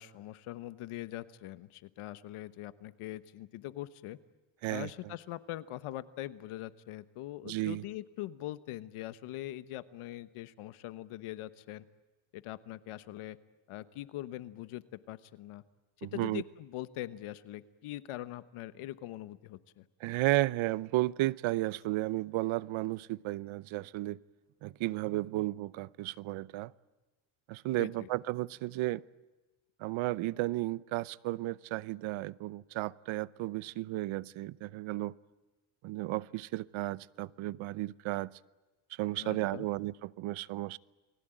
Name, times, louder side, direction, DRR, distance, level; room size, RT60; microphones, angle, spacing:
voice 1, 0.0-4.2 4.7-11.8 12.3-13.4 13.7-15.6 16.0-19.8 27.8-28.1 39.2-39.7, left 15 dB, 80° left, 1.2 m, -42 dB
voice 2, 4.6-5.1 7.4-7.8 16.0-16.4 20.0-24.2 24.6-26.7 27.5-29.0 29.8-35.1 35.8-38.4 38.9-40.8, right 17 dB, 70° right, 0.8 m, -33 dB
29.5 x 20.5 x 9.1 m
cardioid pair, 170°, 50 cm